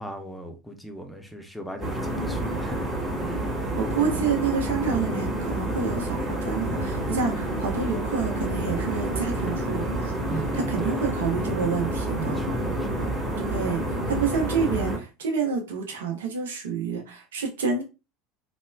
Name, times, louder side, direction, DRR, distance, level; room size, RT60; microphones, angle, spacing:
voice 1, 0.0-2.9 3.2-3.5 10.3-11.1 12.2-13.1, right 1 dB, 5° left, 0.6 m, -37 dB
sound 1, 1.8-15.0, right 1 dB, 20° right, 1.2 m, -28 dB
voice 2, 3.8-10.1 10.5-12.4 13.4-13.8 14.1-17.8, right 5 dB, 70° right, 0.6 m, -28 dB
3.0 x 2.0 x 2.2 m
figure-of-eight pair, 75°, 0 cm